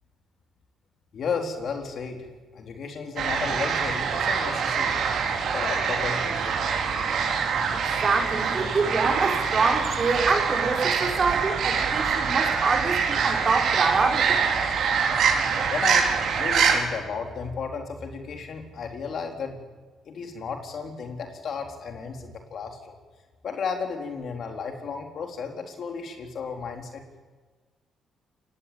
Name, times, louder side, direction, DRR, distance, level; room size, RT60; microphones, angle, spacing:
voice 1, 1.1-5.0 5.5-6.6 15.7-16.1 16.3-19.6 20.1-23.0 23.4-27.0, left 5 dB, 60° left, 3 dB, 4.0 m, -33 dB
sound 1, 3.2-16.8, right 6 dB, 70° right, 4.4 m, -25 dB
voice 2, 8.0-14.4, right 4 dB, 40° right, 2 dB, 4.9 m, -25 dB
28.5 x 16.5 x 8.9 m, 1.4 s
cardioid pair, 90°, 0 cm